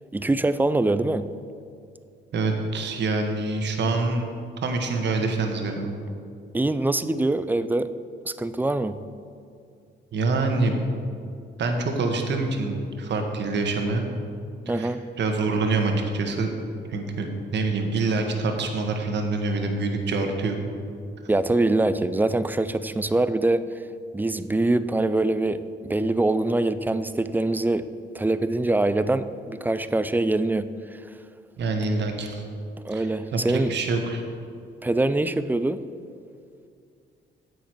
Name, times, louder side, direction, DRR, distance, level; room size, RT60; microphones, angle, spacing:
voice 1, 0.1-1.3 6.5-7.9 8.2-9.0 14.7-15.0 21.3-23.7 24.1-27.9 28.1-31.0 32.8-33.7 34.8-35.9, right 2 dB, 10° right, 13 dB, 0.3 m, -24 dB
voice 2, 2.3-4.3 4.6-5.9 10.1-10.8 11.6-14.0 14.7-14.9 15.2-16.5 16.9-20.6 31.6-32.4 32.9-34.2, right 3 dB, 60° right, 4 dB, 1.3 m, -26 dB
9.5 x 8.1 x 4.6 m, 2.4 s
cardioid pair, 90°, 20 cm